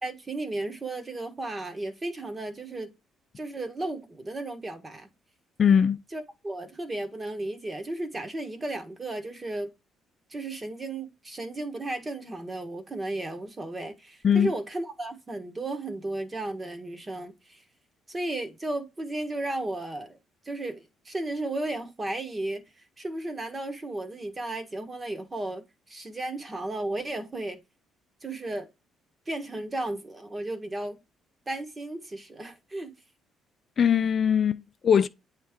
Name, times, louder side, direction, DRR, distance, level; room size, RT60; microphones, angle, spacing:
voice 1, 0.0-2.9 3.4-5.1 6.1-9.7 10.3-17.6 18.1-20.2 20.4-27.6 28.2-28.7 29.3-31.0 31.5-32.9, right 2 dB, 25° right, 1.3 m, -34 dB
voice 2, 5.6-6.0 14.2-14.5 33.8-35.1, left 8 dB, 45° left, 0.4 m, -21 dB
8.4 x 3.2 x 3.6 m
cardioid pair, 90°, 0 cm